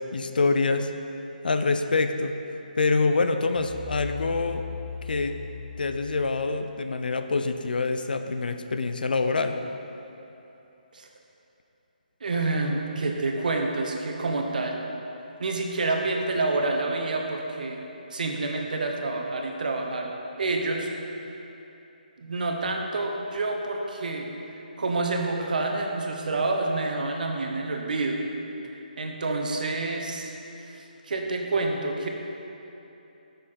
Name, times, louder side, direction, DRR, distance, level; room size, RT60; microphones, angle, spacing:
voice 1, 0.1-0.9 1.4-2.3 2.8-4.6 5.0-5.4 5.8-9.6, left 3 dB, 75° left, 8 dB, 0.5 m, -25 dB
sound 1, 3.6-6.7, left 4 dB, 20° left, 1.3 m, -38 dB
voice 2, 12.2-14.8 15.4-17.8 18.1-20.9 22.2-24.3 24.8-28.2 29.0-30.3 30.7-32.1, right 2 dB, 65° right, 2 dB, 1.0 m, -28 dB
7.2 x 6.3 x 4.3 m, 3.0 s
figure-of-eight pair, 155°, 5 cm